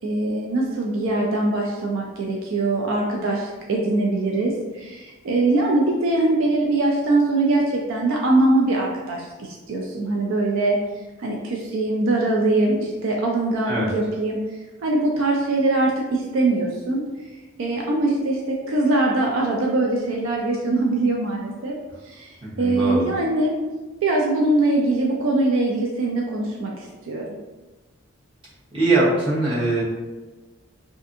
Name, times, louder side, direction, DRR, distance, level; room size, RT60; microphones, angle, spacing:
voice 1, 0.0-10.8 11.2-17.3 17.6-21.7 22.0-23.5 24.0-27.2, right 2 dB, 65° right, -1 dB, 0.3 m, -22 dB
voice 2, 22.4-23.1 28.7-29.8, right 2 dB, 25° right, -9 dB, 0.9 m, -21 dB
2.5 x 2.5 x 2.5 m, 1.2 s
head